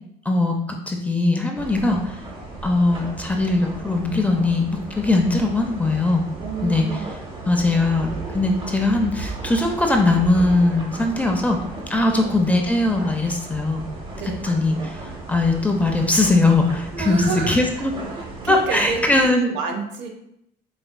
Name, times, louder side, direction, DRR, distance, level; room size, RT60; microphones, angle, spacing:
voice 1, 0.3-2.1 2.6-6.2 6.6-6.9 7.5-8.1 8.3-11.6 11.9-13.8 14.4-15.0 15.3-17.9 18.5-19.5, left 2 dB, 10° left, 2 dB, 0.4 m, -20 dB
sound 1, 1.5-19.3, right 2 dB, 30° right, 0.7 m, -35 dB
voice 2, 6.4-7.1 12.0-12.3 14.2-14.5 16.9-20.1, right 4 dB, 90° right, 2 dB, 0.8 m, -30 dB
4.1 x 3.4 x 2.2 m, 0.78 s
cardioid pair, 135°, 17 cm